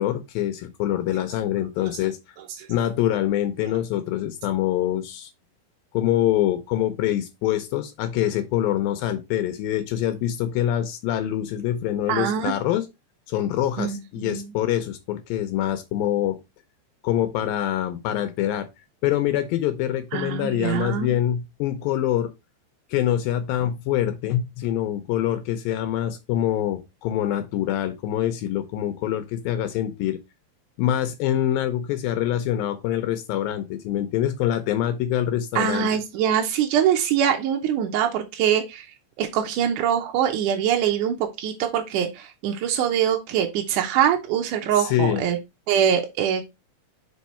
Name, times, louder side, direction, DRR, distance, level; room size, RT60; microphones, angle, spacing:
voice 1, 0.0-2.2 2.7-5.3 5.9-12.9 13.3-16.4 17.0-18.7 19.0-22.3 22.9-30.2 30.8-35.9 44.8-45.2, left 11 dB, 80° left, 2.4 m, -25 dB
voice 2, 12.1-12.5 13.8-14.4 20.1-21.2 35.6-38.9 39.2-45.4 45.7-46.4, right 9 dB, 75° right, 2.0 m, -23 dB
4.9 x 4.6 x 4.2 m
omnidirectional pair, 4.2 m